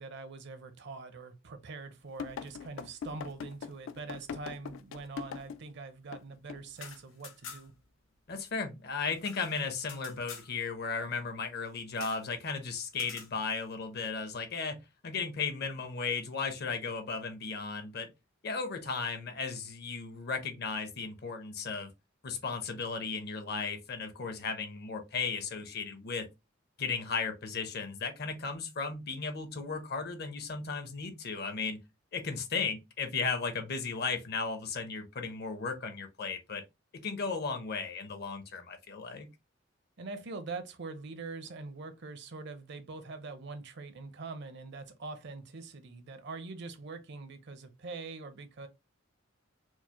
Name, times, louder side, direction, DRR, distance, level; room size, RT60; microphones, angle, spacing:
voice 1, 0.0-7.7 40.0-48.7, right 3 dB, 60° right, 0.6 m, -43 dB
sound 1, 2.2-5.7 6.1-6.2 6.5-6.7, left 7 dB, 75° left, 0.3 m, -41 dB
sound 2, 6.6-7.9 8.1-8.2 8.5-10.5 11.9-12.3 12.9-13.3, left 6 dB, 90° left, 0.9 m, -48 dB
voice 2, 8.3-18.1 18.4-21.9 22.2-26.3 26.8-31.8 32.1-36.6 37.0-39.3, left 5 dB, 55° left, 0.7 m, -35 dB
4.5 x 2.0 x 2.8 m
head